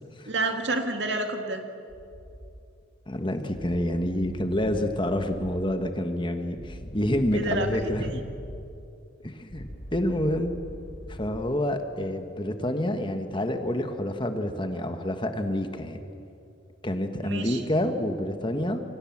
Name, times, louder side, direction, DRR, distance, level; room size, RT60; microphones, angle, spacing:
voice 1, 0.3-1.6 7.3-7.7 17.2-17.6, right 2 dB, 60° right, 5 dB, 2.3 m, -28 dB
sound 1, 1.9-2.6 3.5-5.7 6.6-8.6 9.5-11.5, equal, 40° left, 4.1 m, -42 dB
voice 2, 3.1-8.2 9.2-10.5 11.1-16.0 16.8-18.8, left 1 dB, 25° left, 6 dB, 1.4 m, -28 dB
28.0 x 23.5 x 7.4 m, 2.6 s
head